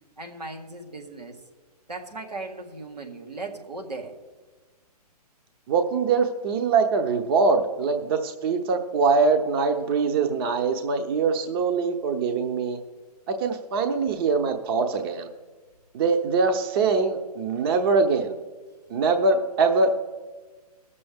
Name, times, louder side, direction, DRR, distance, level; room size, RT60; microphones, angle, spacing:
voice 1, 0.2-1.4 1.9-4.2, right 3 dB, 90° right, 1 dB, 1.9 m, -37 dB
voice 2, 5.7-12.8 13.3-15.3 15.9-18.3 18.9-20.0, right 4 dB, 35° right, 6 dB, 0.8 m, -23 dB
18.5 x 6.9 x 3.5 m, 1.3 s
figure-of-eight pair, 130°, 20 cm